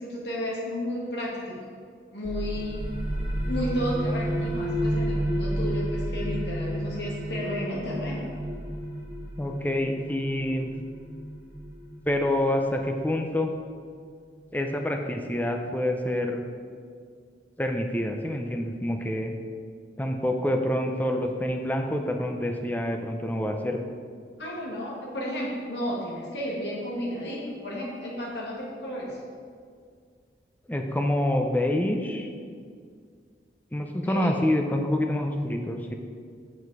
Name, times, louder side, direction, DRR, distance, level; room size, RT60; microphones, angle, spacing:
voice 1, 0.0-1.6 2.1-2.8 3.5-8.3 24.4-29.2 34.0-34.4, equal, 75° left, -4 dB, 1.9 m, -32 dB
sound 1, 2.2-13.6, equal, 30° right, 1.9 m, -31 dB
voice 2, 9.4-10.7 12.1-13.5 14.5-16.5 17.6-19.3 20.0-23.8 30.7-32.3 33.7-36.0, left 1 dB, 10° left, 3 dB, 0.6 m, -27 dB
8.1 x 7.1 x 4.8 m, 2.1 s
head